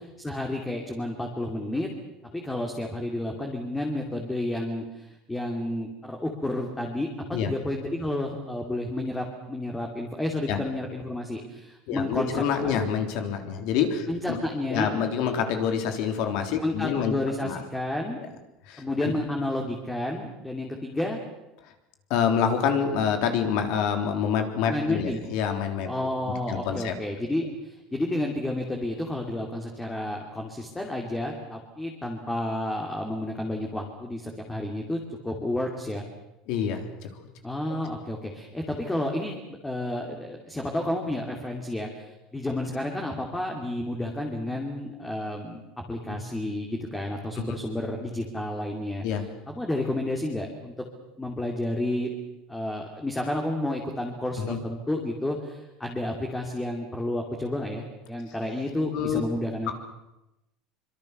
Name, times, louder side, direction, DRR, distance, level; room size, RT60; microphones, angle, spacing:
voice 1, 0.0-1.9 2.3-12.9 14.1-14.9 16.6-18.2 18.8-21.2 24.7-25.2 25.8-36.1 37.4-45.6 45.9-49.0 49.5-50.7 51.2-52.1 52.5-59.7, left 1 dB, 10° left, 1 dB, 2.7 m, -31 dB
voice 2, 11.9-14.4 14.7-17.1 17.4-17.6 18.2-18.3 18.7-19.1 22.1-25.9 26.5-27.0 36.5-37.1 46.1-46.2 47.4-47.6 49.0-49.3 54.4-54.6 58.9-59.2 59.7-59.8, left 7 dB, 60° left, 6 dB, 3.5 m, -27 dB
25.0 x 24.0 x 6.8 m, 0.94 s
cardioid pair, 150°, 0 cm